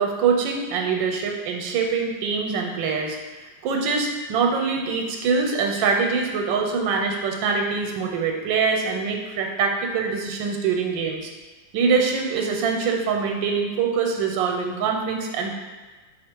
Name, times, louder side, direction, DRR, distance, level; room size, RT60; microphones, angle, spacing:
voice 1, 0.0-3.2 3.6-11.3 11.7-15.5, right 5 dB, 90° right, 2 dB, 1.4 m, -24 dB
4.6 x 2.4 x 4.5 m, 1.3 s
omnidirectional pair, 2.0 m